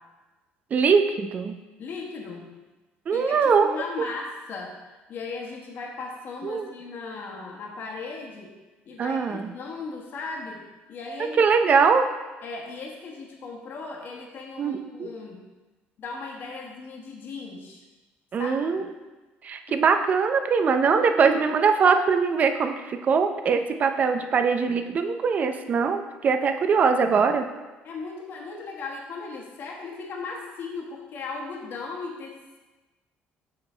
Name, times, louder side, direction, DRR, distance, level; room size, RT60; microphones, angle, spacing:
voice 1, 0.7-1.6 3.1-3.8 6.4-6.7 9.0-9.5 11.4-12.0 14.6-15.1 18.3-18.9 19.4-27.5, right 5 dB, 40° right, 7 dB, 0.5 m, -22 dB
voice 2, 1.8-2.5 3.1-8.5 8.9-11.4 12.4-15.4 16.0-17.8 18.4-18.8 20.6-21.4 27.8-32.6, left 4 dB, 55° left, -1 dB, 1.2 m, -37 dB
6.5 x 4.2 x 4.4 m, 1.2 s
cardioid pair, 120°, 4 cm